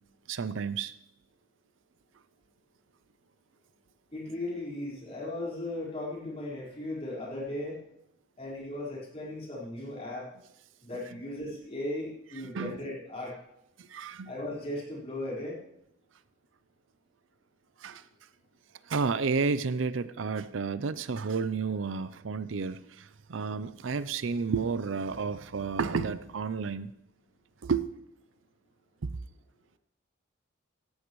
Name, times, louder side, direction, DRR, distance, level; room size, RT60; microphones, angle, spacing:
voice 1, 0.3-0.9 12.4-12.8 13.8-14.3 17.8-18.0 18.9-26.9 27.6-27.9 29.0-29.1, right 5 dB, 70° right, 0.5 m, -31 dB
voice 2, 4.1-7.8 8.4-10.3 10.8-13.4 14.3-15.6, left 1 dB, 30° left, 4.6 m, -37 dB
17.0 x 13.5 x 3.1 m
head